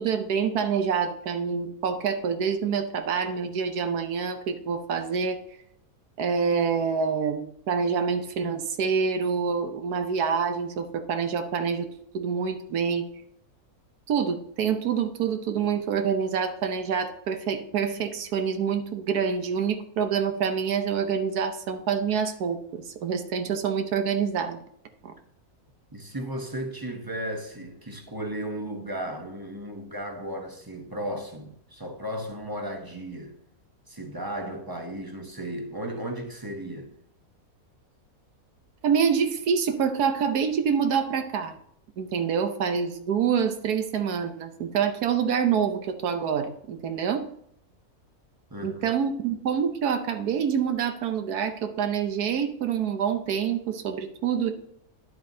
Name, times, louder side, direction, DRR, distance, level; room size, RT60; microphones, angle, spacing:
voice 1, 0.0-5.4 6.2-11.9 12.1-13.0 14.1-24.6 25.0-25.1 38.8-41.6 42.0-47.3 48.6-54.5, right 6 dB, 85° right, 1.4 m, -26 dB
voice 2, 25.9-33.4 33.9-36.9 48.5-48.8, right 1 dB, 20° right, 0.8 m, -35 dB
10.5 x 7.7 x 2.8 m
omnidirectional pair, 1.6 m